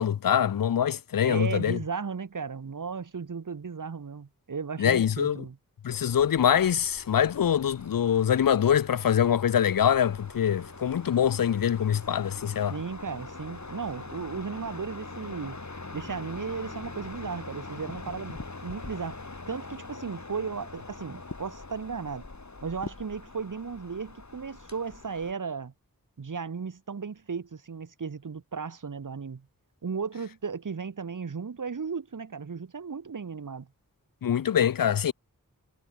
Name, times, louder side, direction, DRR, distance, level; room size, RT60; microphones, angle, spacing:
voice 1, 0.0-1.8 4.8-5.4 5.8-12.7 34.2-35.1, left 9 dB, 75° left, 0.5 m, -24 dB
voice 2, 1.2-5.6 12.7-15.6 15.9-19.2 19.5-22.2 22.6-25.7 26.2-29.5 29.8-33.7, right 5 dB, 65° right, 1.2 m, -35 dB
sound 1, 5.9-25.3, left 3 dB, 55° left, 4.9 m, -43 dB
wide cardioid pair, 50°, 34 cm